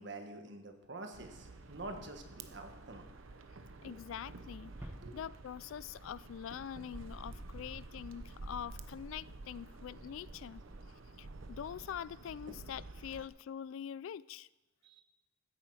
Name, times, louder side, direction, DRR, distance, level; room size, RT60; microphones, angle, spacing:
voice 1, 0.0-3.1 5.0-5.2 12.5-12.6 14.8-15.0, right 2 dB, 55° right, 5 dB, 1.4 m, -47 dB
sound 1, 1.1-13.3, right 2 dB, 75° right, 0.8 m, -50 dB
voice 2, 3.8-4.7 5.1-10.6 11.2-14.5, left 9 dB, 75° left, 20 dB, 0.3 m, -44 dB
sound 2, 4.8-7.5, equal, 10° right, 0.7 m, -53 dB
14.5 x 8.9 x 4.8 m, 1.0 s
head